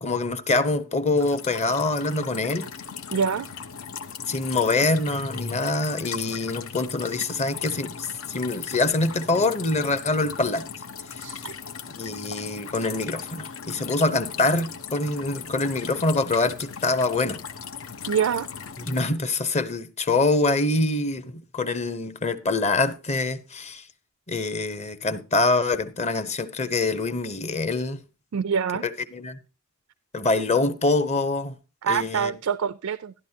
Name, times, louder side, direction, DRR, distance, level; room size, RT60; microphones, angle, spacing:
voice 1, 0.0-2.7 4.3-10.7 11.9-17.4 18.8-23.8 24.3-28.0 28.8-29.4 30.1-31.6 31.9-32.3, left 2 dB, 35° left, 0.9 m, -25 dB
sound 1, 1.2-19.0, left 7 dB, 75° left, 0.8 m, -38 dB
voice 2, 3.1-3.5 11.2-11.5 18.1-18.5 28.3-28.8 31.8-33.1, right 7 dB, 90° right, 0.4 m, -25 dB
12.5 x 12.0 x 2.8 m
head